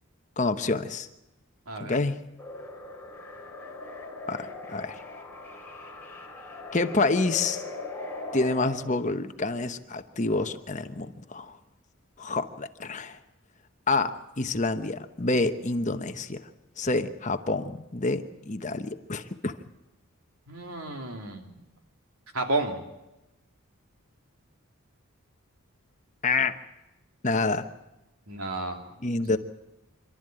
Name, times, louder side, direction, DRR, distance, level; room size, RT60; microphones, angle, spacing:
voice 1, 0.4-1.1 1.8-2.2 4.3-5.0 6.7-7.6 8.3-11.6 12.2-13.2 13.9-16.5 16.8-19.6 26.2-26.6 27.2-27.7 29.0-29.4, left 3 dB, 35° left, 8 dB, 1.0 m, -28 dB
voice 2, 1.7-2.0 20.5-21.6 22.3-22.8 28.3-28.9, right 2 dB, 85° right, 4 dB, 2.8 m, -31 dB
sound 1, 2.4-8.8, left 2 dB, 10° left, 3.9 m, -39 dB
26.5 x 12.5 x 9.0 m, 0.96 s
head